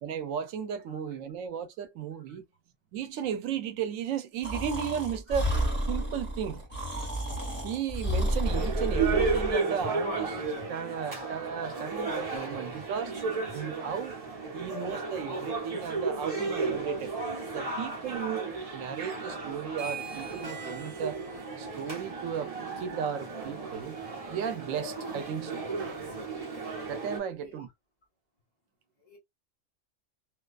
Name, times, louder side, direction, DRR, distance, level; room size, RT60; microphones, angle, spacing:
voice 1, 0.0-2.4 2.9-5.5 5.9-6.6 7.6-10.4 10.7-13.1 13.5-14.2 14.5-17.1 17.5-21.2 21.6-24.0 24.3-25.6 26.9-27.7, right 8 dB, 85° right, 1.0 m, -35 dB
Breathing, 4.4-9.5, equal, 10° left, 1.0 m, -31 dB
sound 1, 8.4-27.2, right 4 dB, 30° right, 0.9 m, -34 dB
sound 2, 19.7-26.3, right 5 dB, 60° right, 1.0 m, -46 dB
voice 2, 27.2-27.7 29.0-29.2, left 2 dB, 35° left, 1.2 m, -57 dB
2.5 x 2.3 x 2.3 m
omnidirectional pair, 1.3 m